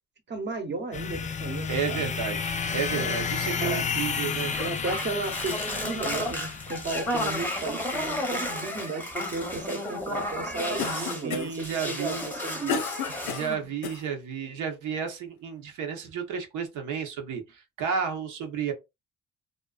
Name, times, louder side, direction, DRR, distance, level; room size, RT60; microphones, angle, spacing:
voice 1, 0.3-2.1 2.9-3.1 3.6-3.8 4.6-13.7, right 3 dB, 35° right, 0.8 m, -35 dB
sound 1, 0.9-7.5, left 6 dB, 25° left, 0.4 m, -31 dB
voice 2, 1.7-4.5 10.8-12.2 13.3-18.7, right 7 dB, 85° right, 0.8 m, -32 dB
sound 2, 4.5-11.2 11.5-13.5, left 1 dB, 5° left, 0.7 m, -33 dB
Cough, 10.8-11.7 12.2-14.0, left 7 dB, 80° left, 0.5 m, -32 dB
2.4 x 2.2 x 2.3 m
cardioid pair, 90°, 30 cm